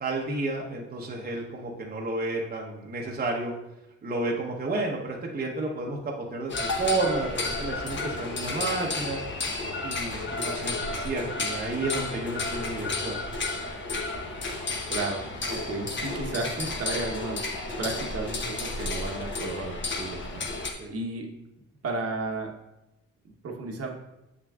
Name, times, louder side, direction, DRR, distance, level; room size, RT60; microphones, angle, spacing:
voice 1, 0.0-3.5 4.0-9.2 9.8-13.2 20.8-20.9, right 2 dB, 30° right, -1 dB, 0.9 m, -31 dB
sound 1, 6.5-20.7, left 3 dB, 40° left, 1.0 m, -32 dB
voice 2, 14.9-17.4 17.8-21.3 21.8-22.5 23.4-23.9, right 3 dB, 55° right, 1 dB, 1.1 m, -33 dB
6.6 x 6.0 x 2.4 m, 0.91 s
cardioid pair, 90°, 30 cm